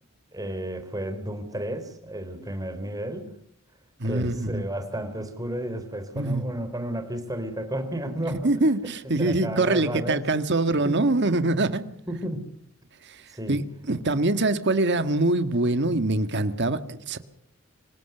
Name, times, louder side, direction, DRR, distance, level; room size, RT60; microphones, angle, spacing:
voice 1, 0.3-3.3 4.0-8.7 9.0-10.2 10.8-11.0 12.1-12.5 13.3-13.6, right 1 dB, 15° right, 3.8 m, -32 dB
voice 2, 4.0-4.6 6.2-6.4 8.3-11.8 13.1-13.2 13.5-13.6 13.9-17.2, right 2 dB, 55° right, 1.7 m, -24 dB
26.0 x 18.0 x 6.8 m
head